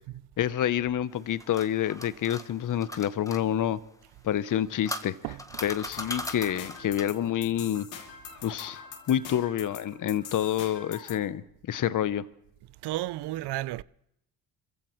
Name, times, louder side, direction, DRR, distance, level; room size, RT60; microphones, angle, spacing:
voice 1, 0.4-3.8 4.2-5.2 5.6-7.9 8.4-11.4 11.7-12.2, left 10 dB, 45° left, 0.8 m, -28 dB
sound 1, 1.1-3.4 4.4-7.2, left 1 dB, 5° left, 1.3 m, -39 dB
voice 2, 5.2-5.8 12.8-13.8, right 16 dB, 60° right, 0.6 m, -33 dB
sound 2, 5.9-11.2, left 6 dB, 70° left, 3.0 m, -44 dB
28.0 x 15.0 x 3.1 m
hypercardioid pair, 60°, 45 cm